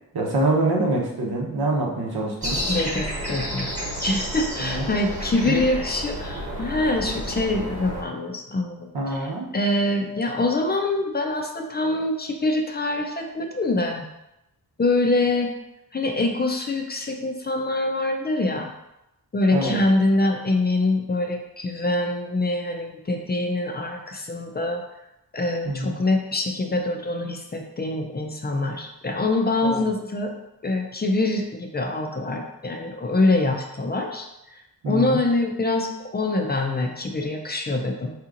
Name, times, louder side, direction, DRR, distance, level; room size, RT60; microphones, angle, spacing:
voice 1, 0.1-2.6 4.6-4.8 5.4-5.6 8.9-9.5 19.5-19.8 25.6-25.9 29.6-29.9 34.8-35.2, right 2 dB, 85° right, -2 dB, 0.9 m, -25 dB
sound 1, 2.4-8.0, equal, 20° right, 1.0 m, -31 dB
voice 2, 2.7-3.7 4.0-14.0 14.8-15.5 15.9-18.7 19.3-24.8 25.3-30.3 30.6-34.3 34.9-38.1, left 2 dB, 30° left, 2 dB, 0.4 m, -24 dB
4.7 x 2.9 x 2.5 m, 0.88 s
wide cardioid pair, 135°, 37 cm